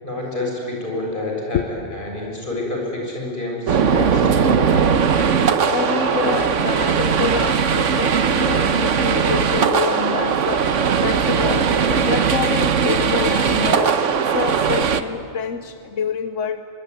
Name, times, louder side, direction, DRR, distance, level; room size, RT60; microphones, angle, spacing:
voice 1, 0.0-4.9, left 2 dB, 45° left, -1 dB, 7.5 m, -28 dB
sound 1, 3.7-15.0, right 6 dB, 90° right, 1.4 m, -19 dB
voice 2, 5.7-16.7, left 6 dB, 90° left, 8 dB, 1.3 m, -27 dB
24.0 x 23.0 x 9.7 m, 2.4 s
omnidirectional pair, 1.2 m